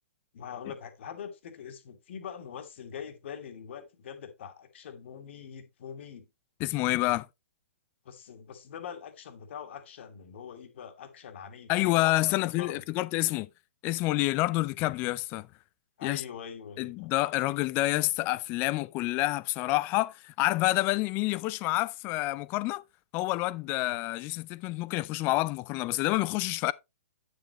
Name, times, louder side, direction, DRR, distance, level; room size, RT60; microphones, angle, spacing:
voice 1, 0.3-6.3 8.0-12.8 16.0-17.1 23.7-24.0, left 8 dB, 55° left, 1.7 m, -43 dB
voice 2, 6.6-7.3 11.7-13.5 13.8-15.5 16.0-16.2 16.8-22.8 23.1-26.7, left 19 dB, 25° left, 0.4 m, -28 dB
9.2 x 6.7 x 3.0 m
figure-of-eight pair, 120°, 8 cm